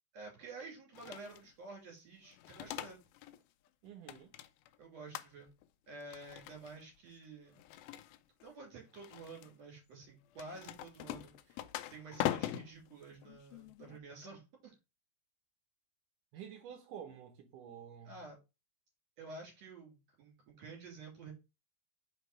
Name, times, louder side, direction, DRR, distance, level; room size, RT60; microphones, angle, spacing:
voice 1, 0.1-3.0 4.8-5.5 5.9-7.6 8.4-11.6 11.9-14.7 18.1-18.4 19.2-21.3, right 3 dB, 50° right, 3.6 m, -50 dB
sound 1, 0.9-1.5 2.3-3.4 3.7-4.8 5.1-5.6 6.0-6.8 7.5-8.5 8.9-9.5 10.3-14.0, left 13 dB, 90° left, 2.5 m, -42 dB
voice 2, 3.8-4.3 16.3-18.2, right 8 dB, 75° right, 2.1 m, -49 dB
5.7 x 4.5 x 4.7 m
omnidirectional pair, 4.2 m